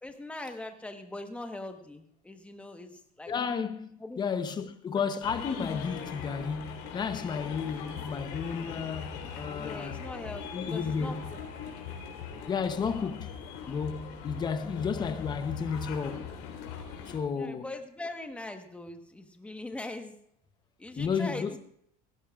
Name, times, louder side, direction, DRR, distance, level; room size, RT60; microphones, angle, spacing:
voice 1, 0.0-3.3 4.0-4.2 9.6-11.4 17.3-20.1 20.8-21.6, left 2 dB, 5° left, 1.2 m, -41 dB
voice 2, 3.3-10.0 10.5-11.3 12.5-13.3 13.7-16.3 17.1-17.7 21.0-21.6, left 6 dB, 20° left, 0.7 m, -32 dB
sound 1, 5.2-17.2, left 7 dB, 70° left, 3.5 m, -40 dB
17.5 x 16.0 x 2.4 m
cardioid pair, 150°, 20 cm